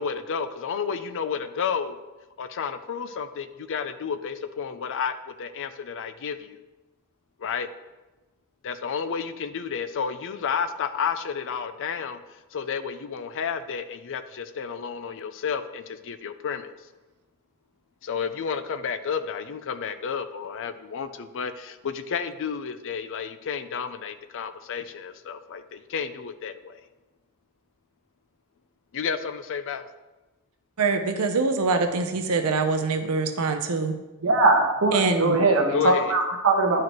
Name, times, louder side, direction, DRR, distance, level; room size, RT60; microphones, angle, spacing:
voice 1, 0.0-2.0 2.4-6.6 7.4-7.7 8.6-12.2 12.5-16.7 18.0-26.8 28.9-29.9 35.7-36.2, left 6 dB, 60° left, 11 dB, 0.5 m, -31 dB
voice 2, 30.8-33.9 34.9-35.4, right 4 dB, 85° right, 6 dB, 0.7 m, -24 dB
voice 3, 34.2-36.8, right 2 dB, 65° right, 1 dB, 1.3 m, -21 dB
11.0 x 4.9 x 3.1 m, 1.1 s
head